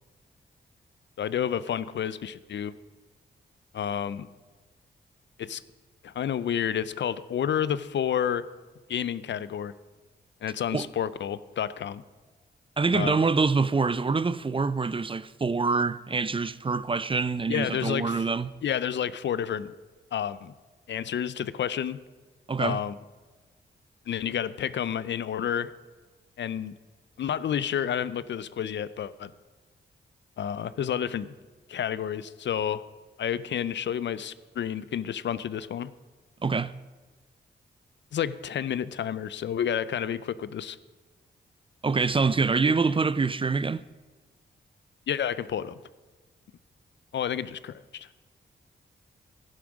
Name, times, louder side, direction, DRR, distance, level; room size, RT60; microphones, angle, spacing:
voice 1, 1.2-2.7 3.7-4.3 5.4-5.6 6.0-8.4 8.9-9.7 10.4-12.0 12.9-13.2 17.5-18.2 18.6-19.7 20.1-20.5 20.9-22.0 22.6-22.9 24.1-25.7 26.4-26.7 27.2-29.3 30.4-31.3 31.7-32.8 33.2-35.9 38.1-40.8 45.1-45.8 47.1-48.1, left 9 dB, 70° left, 0.5 m, -30 dB
voice 2, 12.8-18.5 22.5-22.8 36.4-36.7 41.8-43.8, right 4 dB, 30° right, 0.5 m, -25 dB
12.0 x 11.0 x 5.2 m
cardioid pair, 65°, 19 cm